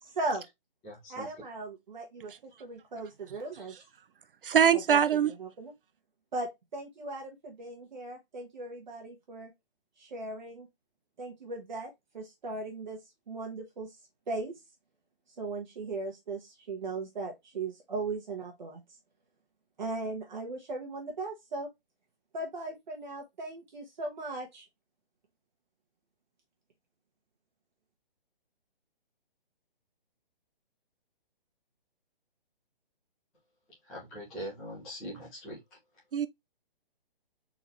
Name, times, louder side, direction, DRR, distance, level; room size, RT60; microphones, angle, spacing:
voice 1, 0.0-0.4 1.1-3.7 4.7-5.7 6.3-9.5 10.0-10.7 11.2-13.0 13.3-14.0 14.3-14.6 15.4-18.8 19.8-21.7 22.3-24.6, right 2 dB, 50° right, 1.3 m, -38 dB
voice 2, 0.8-1.3 33.8-35.6, equal, 5° left, 0.6 m, -42 dB
voice 3, 4.4-5.3 36.1-36.3, right 8 dB, 70° right, 0.5 m, -22 dB
4.1 x 3.8 x 3.0 m
hypercardioid pair, 170°, 29 cm